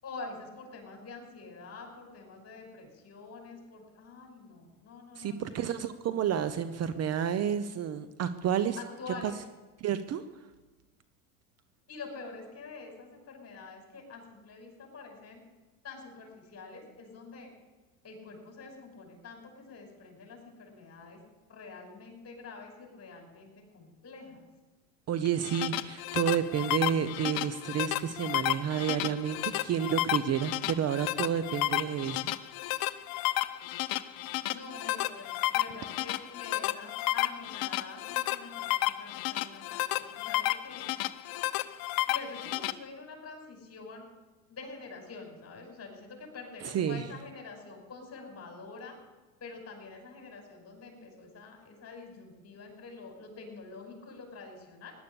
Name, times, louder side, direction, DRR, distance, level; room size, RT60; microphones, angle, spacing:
voice 1, 0.0-5.5 8.8-9.4 11.9-15.4 15.8-17.5 18.0-21.2 21.5-24.4 34.5-40.9 42.1-44.1 44.5-48.9 49.4-54.9, left 4 dB, 35° left, 3 dB, 5.7 m, -46 dB
voice 2, 5.2-8.8 9.1-9.3 9.8-10.2 25.1-32.3 46.6-47.1, right 9 dB, 35° right, 12 dB, 0.9 m, -30 dB
sound 1, 25.3-42.7, left 16 dB, 55° left, 0.8 m, -32 dB
17.0 x 11.5 x 7.1 m, 1.2 s
supercardioid pair, 105°, 43 cm